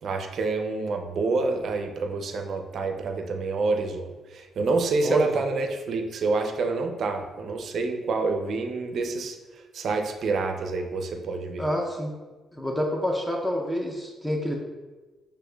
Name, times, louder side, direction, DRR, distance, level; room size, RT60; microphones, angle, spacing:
voice 1, 0.0-9.4 9.7-11.6, right 3 dB, 60° right, 5 dB, 0.4 m, -27 dB
voice 2, 5.0-5.4 11.6-12.1 12.5-14.6, equal, 10° left, 0 dB, 0.5 m, -27 dB
6.3 x 2.5 x 2.2 m, 1.3 s
cardioid pair, 90°, 0 cm